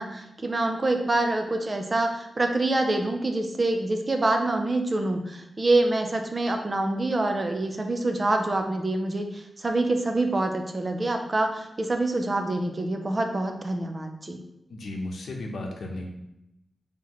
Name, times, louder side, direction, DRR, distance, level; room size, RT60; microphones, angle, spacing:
voice 1, 0.0-14.4, right 2 dB, 25° right, 4 dB, 0.4 m, -26 dB
voice 2, 14.7-16.0, left 2 dB, 75° left, 2 dB, 0.8 m, -34 dB
5.7 x 2.9 x 3.0 m, 0.86 s
wide cardioid pair, 170°, 0 cm